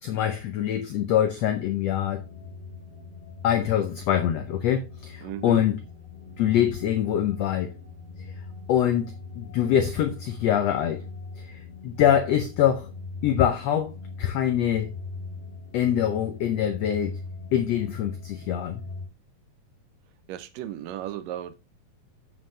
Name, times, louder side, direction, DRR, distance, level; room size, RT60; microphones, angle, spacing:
voice 1, 0.0-2.2 3.4-5.8 6.4-7.7 8.7-11.0 11.4-12.9 13.2-14.9 15.7-17.2 17.5-18.8, left 10 dB, 80° left, 1.5 m, -24 dB
sound 1, 1.9-19.1, left 4 dB, 20° left, 4.1 m, -41 dB
voice 2, 5.2-5.7 20.3-21.5, right 12 dB, 80° right, 2.2 m, -35 dB
7.4 x 7.4 x 3.2 m
omnidirectional pair, 4.0 m